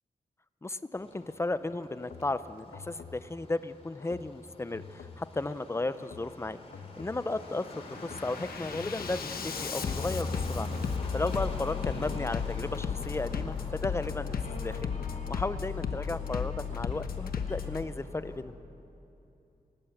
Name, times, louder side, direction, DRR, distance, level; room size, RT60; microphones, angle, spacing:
voice 1, 0.6-6.6 7.0-10.7 11.1-15.0 15.3-18.5, left 2 dB, 15° left, 13 dB, 0.6 m, -34 dB
sound 1, 0.9-18.4, left 1 dB, 40° left, 2.7 m, -45 dB
Bass drum, 2.0-2.3 2.7-3.2 4.0-4.3 4.7-5.2 6.0-6.3 6.7-7.2 7.6-17.8, left 6 dB, 80° left, 1.1 m, -35 dB
sound 2, 8.5-17.6, left 2 dB, 60° left, 2.8 m, -49 dB
20.0 x 18.0 x 7.9 m, 2.8 s
wide cardioid pair, 135°, 15 cm